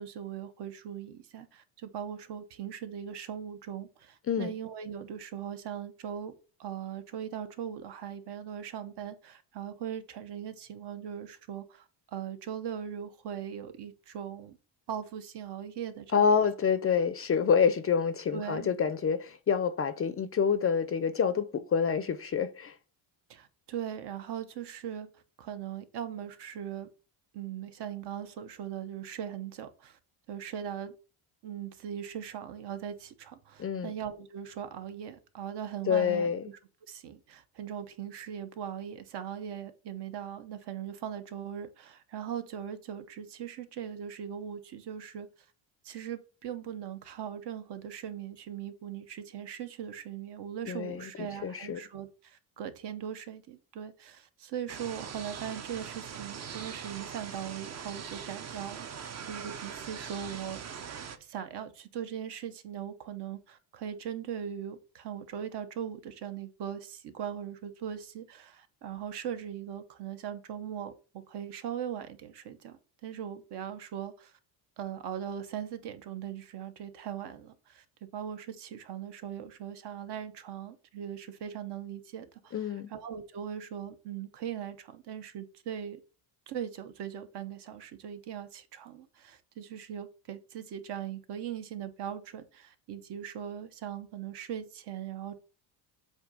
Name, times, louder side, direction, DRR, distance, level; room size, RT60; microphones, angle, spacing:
voice 1, 0.0-6.3 6.6-14.6 14.9-16.3 18.3-18.7 23.3-25.1 25.4-26.9 27.3-30.0 30.3-30.9 31.4-36.3 36.9-45.3 45.8-60.6 61.2-70.9 71.3-74.3 74.8-77.8 78.1-82.6 82.9-86.0 86.5-95.4, right 9 dB, 60° right, 0.9 m, -40 dB
voice 2, 16.1-22.7 33.6-33.9 35.9-36.4 50.6-51.8 82.5-82.9, left 6 dB, 30° left, 0.5 m, -27 dB
sound 1, 54.7-61.2, right 7 dB, 35° right, 0.6 m, -42 dB
7.9 x 2.8 x 5.0 m
cardioid pair, 130°, 47 cm